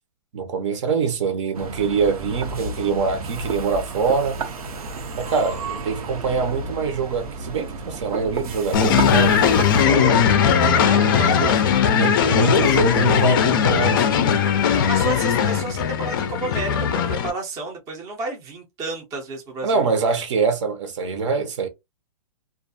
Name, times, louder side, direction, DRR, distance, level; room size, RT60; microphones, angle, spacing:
voice 1, 0.3-4.4 5.2-10.3 11.0-11.5 11.9-14.4 19.6-21.7, right 5 dB, 55° right, 0.8 m, -24 dB
sound 1, 1.5-9.8, right 3 dB, 85° right, 0.9 m, -32 dB
sound 2, 8.7-17.3, left 7 dB, 35° left, 0.4 m, -18 dB
voice 2, 10.8-11.6 13.9-14.0 14.5-19.9, right 3 dB, 15° right, 0.6 m, -31 dB
2.4 x 2.2 x 2.5 m
hypercardioid pair, 160°, 18 cm